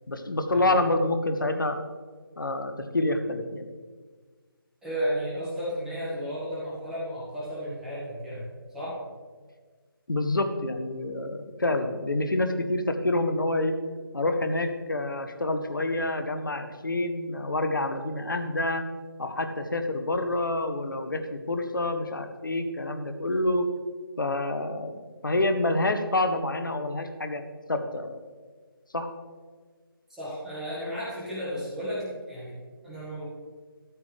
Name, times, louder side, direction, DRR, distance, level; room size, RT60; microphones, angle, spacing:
voice 1, 0.1-1.8 2.4-3.7 10.1-13.8 14.1-18.8 19.2-23.7 24.2-24.9 25.2-28.2 28.9-29.1, left 2 dB, 60° left, 7 dB, 1.1 m, -27 dB
voice 2, 4.8-8.4 8.7-8.9 30.1-33.2, equal, 5° right, -9 dB, 1.6 m, -33 dB
13.5 x 7.3 x 3.3 m, 1.5 s
figure-of-eight pair, 155°, 12 cm